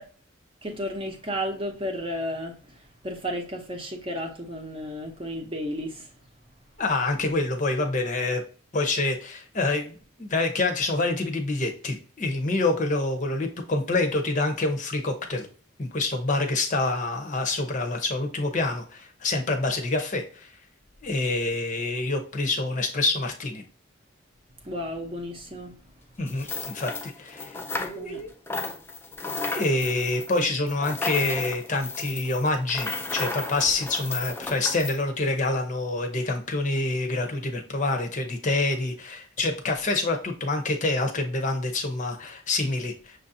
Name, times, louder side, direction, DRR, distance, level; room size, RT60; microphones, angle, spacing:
voice 1, 0.6-6.1 24.6-25.8 27.8-28.2, equal, 25° right, 0.8 m, -33 dB
voice 2, 6.8-8.4 8.7-15.5 15.8-20.5 21.0-23.6 26.2-28.3 29.5-43.2, left 2 dB, 35° left, 0.7 m, -27 dB
sound 1, 26.3-28.2 28.5-35.0, left 3 dB, 10° left, 0.3 m, -34 dB
6.3 x 2.6 x 2.7 m
head